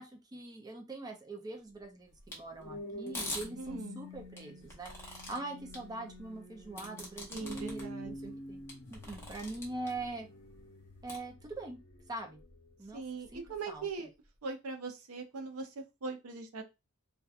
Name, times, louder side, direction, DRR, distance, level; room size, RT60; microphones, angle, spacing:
voice 1, 0.0-8.6 8.9-10.3 11.0-11.8 12.1-12.4 12.8-13.0 13.3-13.8, right 2 dB, 20° right, 3 dB, 0.4 m, -43 dB
sound 1, 2.2-12.7 13.3-13.6, left 1 dB, 65° left, 0.9 m, -48 dB
sound 2, 2.3-2.4 3.1-3.5 4.4-5.4 5.7-5.8 6.8-7.8 8.3-8.4 8.7-9.9 11.1-11.2, left 2 dB, 10° left, 0.7 m, -42 dB
voice 2, 3.6-4.0 7.3-8.4 12.9-14.1 14.4-16.6, right 4 dB, 80° right, 4 dB, 0.5 m, -41 dB
2.7 x 2.2 x 2.3 m, 0.25 s
head